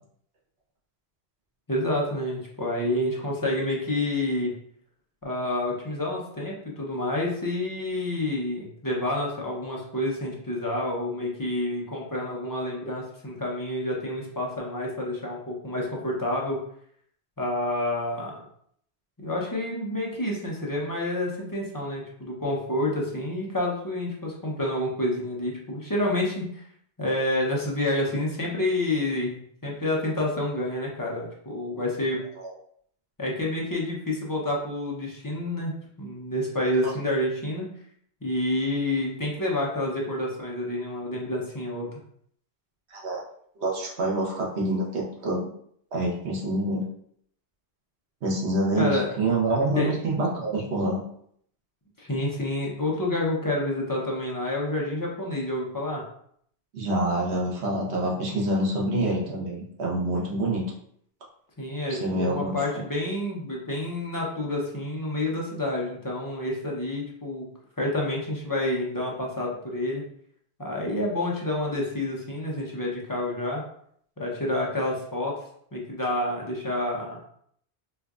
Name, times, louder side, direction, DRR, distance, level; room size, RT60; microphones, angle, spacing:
voice 1, 1.7-4.5 5.2-16.6 17.4-18.3 19.2-26.6 27.0-32.2 33.2-35.7 36.0-37.7 38.2-41.9 48.7-49.1 49.7-49.9 52.0-56.0 61.6-67.5 67.8-70.1 70.6-73.6 74.2-75.4 75.7-77.2, left 1 dB, 25° left, -3 dB, 0.6 m, -28 dB
voice 2, 42.9-43.2 43.6-45.5 45.9-46.8 48.2-51.0 56.7-60.7 61.9-62.5, right 1 dB, 90° right, -2 dB, 1.2 m, -26 dB
4.3 x 2.5 x 2.3 m, 0.66 s
omnidirectional pair, 1.1 m